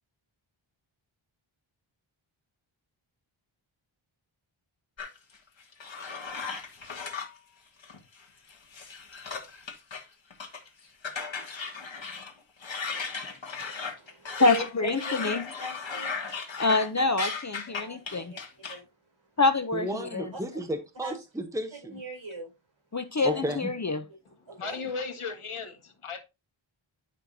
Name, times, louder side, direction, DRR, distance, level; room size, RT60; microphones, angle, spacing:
sound 1, 5.0-7.4 7.8-8.2 8.5-10.0 10.3-10.7 11.0-12.3 12.6-18.8, left 5 dB, 65° left, 1.8 m, -36 dB
voice 1, 13.6-16.1 17.7-18.4 18.7-18.8 20.3-20.4 21.0-21.2 21.7-22.5 23.3-23.4 24.5-24.8, right 3 dB, 60° right, 5.5 m, -40 dB
voice 2, 14.4-15.4 16.6-18.3 19.4-20.3 22.9-24.0, left 3 dB, 35° left, 0.7 m, -26 dB
voice 3, 19.7-22.0 23.2-23.7, right 1 dB, 5° right, 1.0 m, -33 dB
voice 4, 24.5-26.2, left 4 dB, 85° left, 1.7 m, -36 dB
10.5 x 5.6 x 2.7 m
wide cardioid pair, 100°, 49 cm